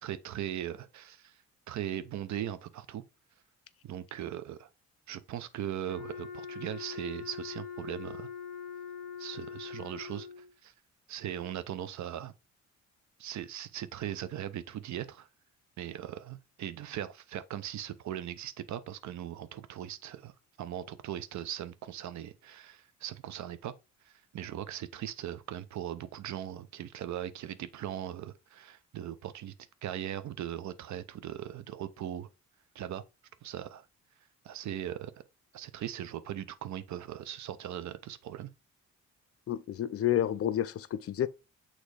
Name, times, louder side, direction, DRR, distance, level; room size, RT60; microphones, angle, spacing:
voice 1, 0.0-1.4 1.7-3.0 3.8-4.7 5.1-8.3 9.2-10.7 11.1-12.3 13.2-15.3 15.8-20.3 20.6-23.7 24.1-29.5 29.8-32.3 32.7-33.0 33.4-33.9 34.4-35.2 35.5-38.5, right 11 dB, 70° right, 0.7 m, -39 dB
Wind instrument woodwind instrument, 5.8-10.5, left 7 dB, 30° left, 1.8 m, -42 dB
voice 2, 39.5-41.3, left 11 dB, 50° left, 0.6 m, -30 dB
6.4 x 3.1 x 4.8 m
cardioid pair, 90°, 30 cm